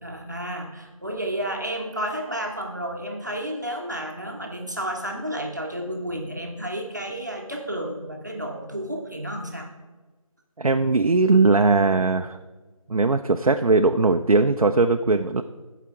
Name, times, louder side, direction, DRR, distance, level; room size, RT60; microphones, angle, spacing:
voice 1, 0.0-9.7, right 1 dB, 30° right, 1 dB, 1.0 m, -31 dB
voice 2, 10.6-12.4 12.9-15.4, right 3 dB, 75° right, 6 dB, 0.6 m, -19 dB
14.5 x 5.0 x 4.7 m, 1.3 s
figure-of-eight pair, 175°, 18 cm